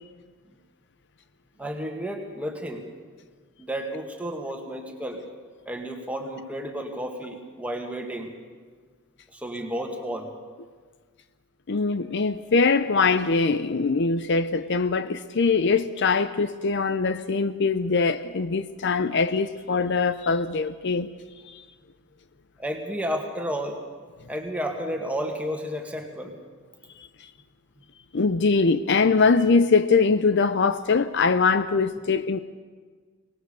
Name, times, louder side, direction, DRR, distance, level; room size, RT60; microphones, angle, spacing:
voice 1, 1.6-2.9 3.6-5.3 5.7-8.3 9.3-10.3 22.6-23.8 24.3-26.4, equal, 5° right, 2.1 m, -32 dB
voice 2, 11.7-21.1 21.5-21.6 28.1-32.4, left 4 dB, 55° left, 0.6 m, -22 dB
23.5 x 19.5 x 6.9 m
head